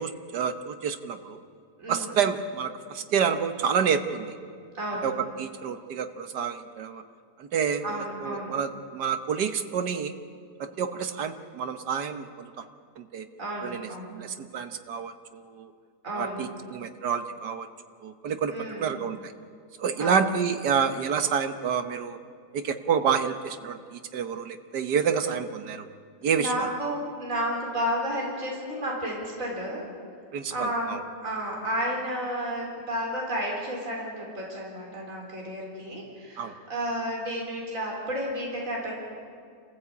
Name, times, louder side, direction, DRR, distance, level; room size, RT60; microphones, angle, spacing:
voice 1, 0.0-1.4 1.9-4.3 5.0-7.0 7.4-7.8 8.2-10.2 10.6-12.6 13.0-13.3 13.6-15.7 16.1-17.7 18.0-18.5 18.8-19.3 19.8-22.2 22.5-25.9 26.2-26.7 30.3-31.0 36.4-36.5, right 7 dB, 75° right, 8 dB, 1.7 m, -28 dB
voice 2, 1.8-2.1 4.7-5.1 7.8-8.5 13.4-14.1 16.0-16.4 18.5-18.9 20.0-20.2 26.3-29.8 30.5-39.0, equal, 50° right, -2 dB, 4.5 m, -32 dB
28.0 x 15.0 x 8.3 m, 2.2 s
omnidirectional pair, 1.8 m